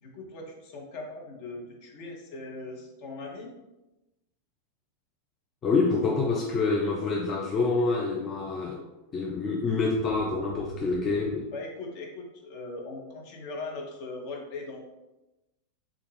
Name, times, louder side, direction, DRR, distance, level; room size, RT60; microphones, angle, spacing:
voice 1, 0.0-3.5 11.5-14.8, left 3 dB, 45° left, 0 dB, 0.8 m, -39 dB
voice 2, 5.6-8.8 9.1-11.5, left 3 dB, 25° left, -2 dB, 0.4 m, -27 dB
sound 1, 8.9-9.0 9.4-11.3, right 3 dB, 85° left, 1.2 m, -44 dB
3.5 x 2.3 x 3.2 m, 1.0 s
figure-of-eight pair, 90°, 0 cm